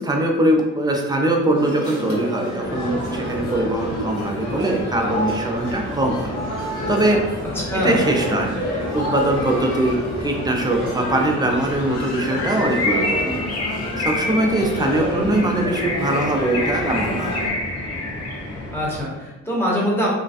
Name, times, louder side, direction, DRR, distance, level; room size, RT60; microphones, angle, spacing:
voice 1, 0.0-6.3 6.6-7.2 7.7-17.3, right 1 dB, 15° right, 1 dB, 0.4 m, -22 dB
sound 1, 1.5-17.5, equal, 75° left, 0.9 m, -29 dB
sound 2, 2.6-19.0, left 1 dB, 40° left, 0.9 m, -34 dB
voice 2, 7.7-8.0 15.1-15.3 18.7-20.1, equal, 10° left, -5 dB, 0.9 m, -23 dB
Bird, 12.3-18.6, left 2 dB, 60° left, 0.5 m, -28 dB
2.4 x 2.2 x 2.4 m, 1.0 s
cardioid pair, 90°, 30 cm